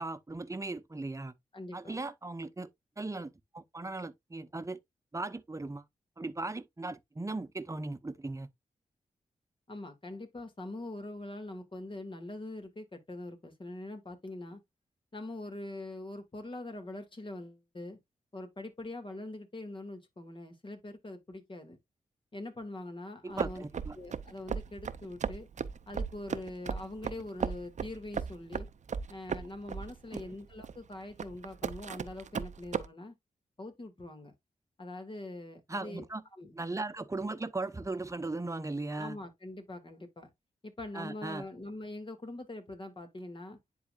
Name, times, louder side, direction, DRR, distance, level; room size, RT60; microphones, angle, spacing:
voice 1, 0.0-1.3 1.7-2.7 3.0-4.8 5.1-5.8 6.2-8.5 23.2-24.0 30.1-30.2 35.7-36.2 36.5-39.2 40.9-41.5, right 2 dB, 20° right, 1.0 m, -38 dB
voice 2, 1.5-2.0 9.7-14.6 15.1-18.0 18.3-21.8 22.3-23.6 23.9-25.5 25.9-28.7 29.1-33.1 33.6-34.3 34.8-36.0 36.4-36.5 39.0-40.3 40.6-43.6, left 2 dB, 40° left, 2.3 m, -43 dB
sound 1, 23.4-32.9, right 6 dB, 60° right, 0.7 m, -36 dB
10.0 x 4.0 x 2.5 m
supercardioid pair, 45°, 14 cm